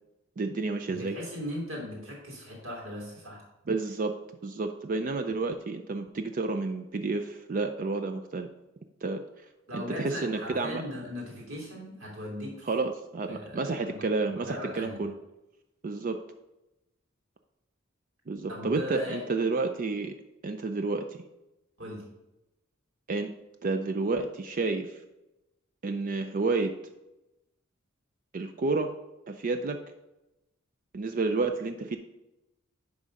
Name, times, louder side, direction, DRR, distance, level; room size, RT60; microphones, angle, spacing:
voice 1, 0.4-1.2 3.7-4.1 4.4-8.5 9.0-9.2 9.7-10.8 12.7-15.1 15.8-16.2 18.3-20.1 20.4-21.2 23.1-23.3 23.6-25.0 25.8-26.7 28.3-28.9 29.3-29.8 30.9-32.0, right 3 dB, 40° right, 7 dB, 0.4 m, -30 dB
voice 2, 0.9-3.4 9.7-12.7 13.3-14.1 14.4-15.0 18.5-19.3 21.8-22.1, left 1 dB, 70° right, -2 dB, 3.0 m, -38 dB
10.5 x 3.6 x 5.3 m, 0.96 s
head